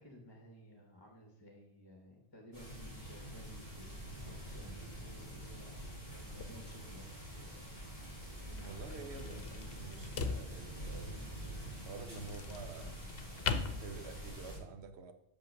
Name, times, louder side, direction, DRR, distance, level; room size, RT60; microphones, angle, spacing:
voice 1, 0.0-7.1 7.4-7.7 8.2-8.9, left 1 dB, 25° left, 1.1 m, -57 dB
sound 1, 2.5-14.6, right 1 dB, 60° right, 4.0 m, -46 dB
sound 2, 6.4-14.5, left 5 dB, 70° left, 0.9 m, -43 dB
voice 2, 8.6-11.2 11.8-13.0 13.6-15.1, right 5 dB, 85° right, 1.0 m, -49 dB
6.2 x 5.7 x 6.1 m
omnidirectional pair, 1.1 m